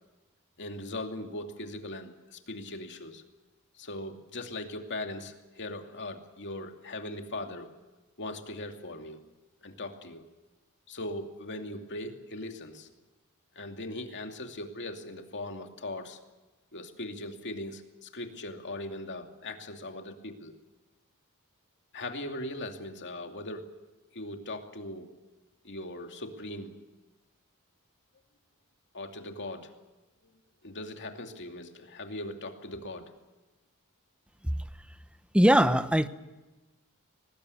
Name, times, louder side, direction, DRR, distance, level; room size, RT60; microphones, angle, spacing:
voice 1, 0.6-3.2 3.8-7.7 8.2-9.2 9.6-10.2 10.9-12.9 13.5-16.2 16.7-20.5 21.9-23.8 24.1-25.1 25.6-26.7 28.9-29.7 30.6-33.1, left 1 dB, 55° left, 4 dB, 2.6 m, -39 dB
voice 2, 35.3-36.1, equal, 5° right, 12 dB, 0.9 m, -20 dB
23.5 x 20.0 x 8.5 m, 1.1 s
head